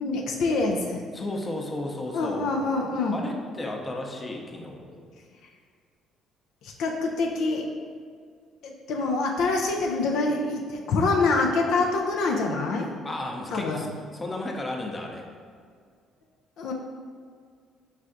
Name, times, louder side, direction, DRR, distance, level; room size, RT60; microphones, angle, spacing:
voice 1, 0.0-1.0 2.1-3.2 5.4-5.5 6.6-7.7 8.6-12.9 13.5-13.9 16.6-16.7, left 3 dB, 75° left, 1 dB, 0.4 m, -26 dB
voice 2, 1.1-2.5 3.1-5.0 13.0-13.9 14.1-15.2, left 1 dB, 25° left, 1 dB, 0.6 m, -34 dB
4.7 x 3.2 x 2.5 m, 2.1 s
supercardioid pair, 80°, 0 cm